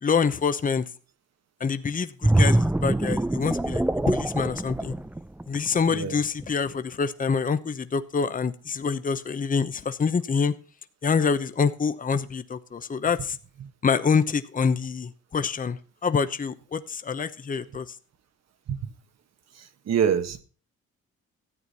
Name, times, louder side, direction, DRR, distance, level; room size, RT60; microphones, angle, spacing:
voice 1, 0.0-0.8 1.6-4.9 5.5-10.5 11.0-13.4 13.8-17.9, left 5 dB, 25° left, 12 dB, 0.9 m, -26 dB
sound 1, 2.2-5.8 6.3-6.5, right 1 dB, 5° right, 0.4 m, -24 dB
voice 2, 19.6-20.4, right 8 dB, 60° right, 10 dB, 1.4 m, -25 dB
13.5 x 8.9 x 4.2 m, 0.39 s
cardioid pair, 90°, 30 cm